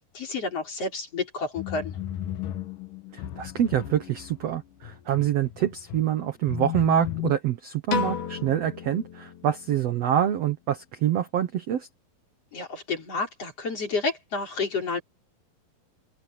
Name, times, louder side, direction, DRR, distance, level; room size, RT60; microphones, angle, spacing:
voice 1, 0.1-1.9 12.5-15.0, left 3 dB, 40° left, 5.6 m, -30 dB
sound 1, 1.6-7.3, left 13 dB, 70° left, 2.6 m, -35 dB
voice 2, 3.1-11.9, right 10 dB, 65° right, 1.6 m, -26 dB
Piano, 7.9-10.2, left 8 dB, 85° left, 4.6 m, -33 dB
open air
omnidirectional pair, 4.2 m